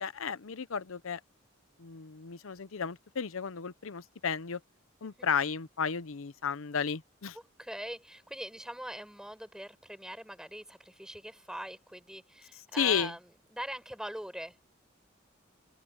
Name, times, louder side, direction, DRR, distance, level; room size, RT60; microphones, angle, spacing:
voice 1, 0.0-1.2 1.8-4.6 5.0-7.3 12.8-13.1, left 6 dB, 80° left, 0.7 m, -33 dB
voice 2, 7.3-14.6, equal, 5° right, 5.9 m, -42 dB
open air
head